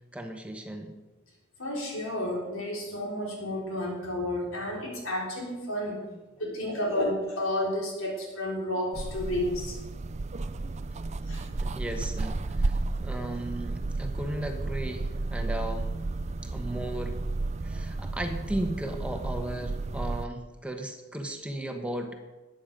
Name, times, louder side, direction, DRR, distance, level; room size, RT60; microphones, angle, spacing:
voice 1, 0.1-1.0 6.0-6.2 11.6-15.9 16.4-17.2 17.6-22.1, right 1 dB, 5° right, 4 dB, 1.3 m, -36 dB
voice 2, 1.6-6.1 6.4-9.8 11.3-11.5, left 1 dB, 90° left, -1 dB, 3.6 m, -31 dB
sound 1, 8.9-20.3, right 2 dB, 35° right, 0.4 m, -32 dB
13.0 x 9.2 x 5.2 m, 1.1 s
head